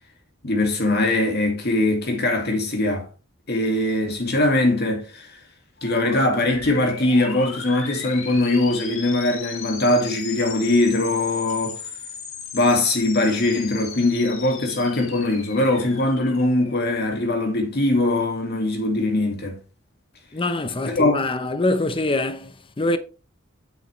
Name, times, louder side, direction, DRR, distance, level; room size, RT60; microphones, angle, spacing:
voice 1, 0.4-3.1 3.5-5.3 5.8-11.8 12.5-19.6 20.9-21.2, left 2 dB, 55° left, 2.2 m, -21 dB
sound 1, 5.8-17.5, left 5 dB, 80° left, 2.1 m, -37 dB
voice 2, 20.3-23.0, left 2 dB, 25° left, 0.7 m, -24 dB
8.5 x 6.4 x 3.2 m
head